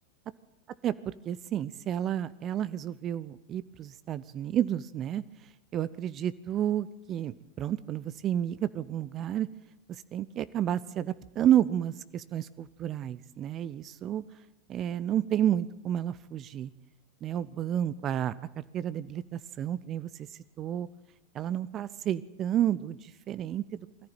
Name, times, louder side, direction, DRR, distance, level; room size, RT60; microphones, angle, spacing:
voice 1, 0.8-5.2 5.7-9.5 10.1-14.2 14.7-16.7 17.2-20.1 20.6-20.9 21.3-23.8, right 10 dB, 30° right, 16 dB, 0.7 m, -31 dB
22.0 x 14.5 x 9.2 m, 0.91 s
figure-of-eight pair, 90°, 0 cm